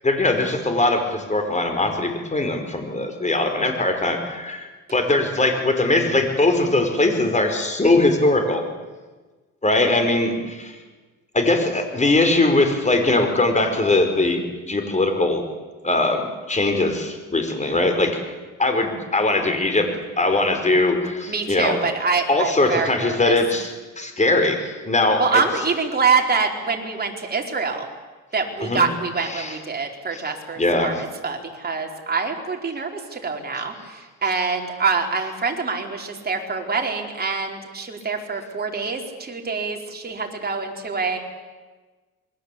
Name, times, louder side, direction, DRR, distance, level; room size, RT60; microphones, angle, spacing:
voice 1, 0.0-8.6 9.6-10.8 11.3-14.4 14.7-15.4 15.8-18.3 18.6-19.9 20.2-21.8 22.3-25.4 28.6-28.9 29.2-29.6 30.1-30.2 30.6-30.9, left 2 dB, 25° left, 6 dB, 5.2 m, -21 dB
voice 2, 21.3-23.3 25.2-27.9 28.3-41.2, right 4 dB, 30° right, 2 dB, 4.6 m, -25 dB
28.0 x 22.0 x 8.6 m, 1.3 s
cardioid pair, 90°, 30 cm